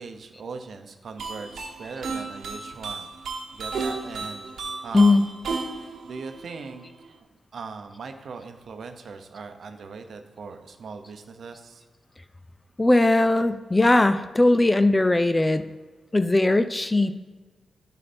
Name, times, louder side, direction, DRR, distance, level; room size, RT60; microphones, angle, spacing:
voice 1, 0.0-3.1 3.5-5.3 5.7-7.2 7.5-11.8, right 4 dB, 65° right, 6 dB, 0.8 m, -40 dB
sound 1, 1.2-7.1, right 4 dB, 85° right, 1.1 m, -34 dB
voice 2, 12.8-15.7 16.1-17.1, left 2 dB, 15° left, 11 dB, 0.3 m, -19 dB
11.0 x 4.1 x 4.2 m, 1.3 s
wide cardioid pair, 130°, 0 cm